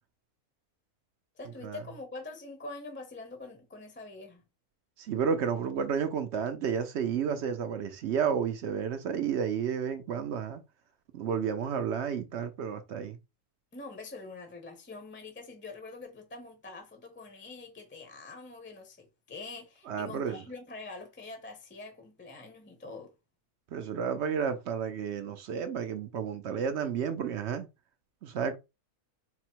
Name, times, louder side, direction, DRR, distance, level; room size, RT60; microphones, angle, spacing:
voice 1, 1.4-4.4 13.7-23.1, left 3 dB, 10° left, 0.6 m, -45 dB
voice 2, 5.0-10.6 11.1-13.2 19.9-20.4 23.7-27.7 28.2-28.6, right 7 dB, 65° right, 0.7 m, -31 dB
4.2 x 2.0 x 4.4 m
omnidirectional pair, 1.6 m